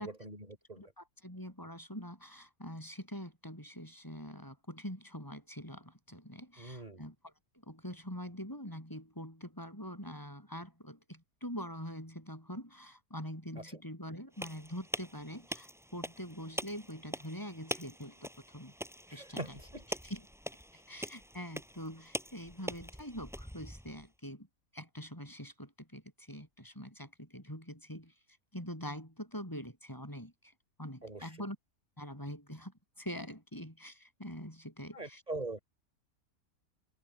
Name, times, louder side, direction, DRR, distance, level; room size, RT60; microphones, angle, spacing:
voice 1, 0.0-0.8 6.6-7.0 19.1-19.9 31.0-31.4 34.9-35.6, right 2 dB, 30° right, 4.6 m, -42 dB
voice 2, 0.8-7.3 7.6-18.7 19.1-19.6 20.0-20.2 20.9-24.5 24.7-28.1 28.5-30.3 30.8-31.6 32.0-35.2, equal, 15° left, 8.1 m, -44 dB
sound 1, 14.3-24.1, equal, ahead, 7.6 m, -44 dB
omnidirectional pair, 1.5 m